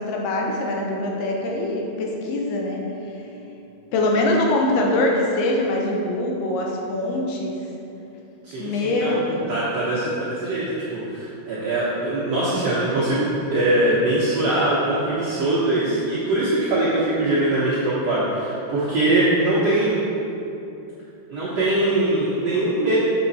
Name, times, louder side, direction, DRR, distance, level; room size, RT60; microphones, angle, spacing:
voice 1, 0.0-2.8 3.9-7.6 8.6-9.5, left 2 dB, 80° left, 0 dB, 2.8 m, -23 dB
voice 2, 8.4-9.1 9.5-20.0 21.3-23.0, right 2 dB, 65° right, -10 dB, 1.5 m, -22 dB
7.0 x 7.0 x 4.1 m, 2.8 s
omnidirectional pair, 4.5 m